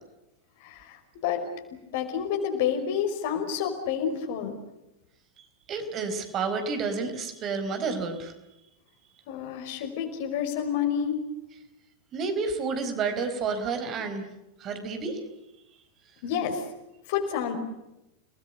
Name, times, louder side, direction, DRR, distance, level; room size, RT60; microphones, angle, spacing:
voice 1, 0.6-1.4 1.9-4.5 9.3-11.2 16.2-16.6 17.1-17.6, left 8 dB, 50° left, 5 dB, 5.3 m, -29 dB
voice 2, 5.7-8.3 12.1-14.3 14.6-15.2, right 4 dB, 30° right, 7 dB, 4.4 m, -30 dB
30.0 x 20.0 x 8.0 m, 0.92 s
figure-of-eight pair, 90°, 0 cm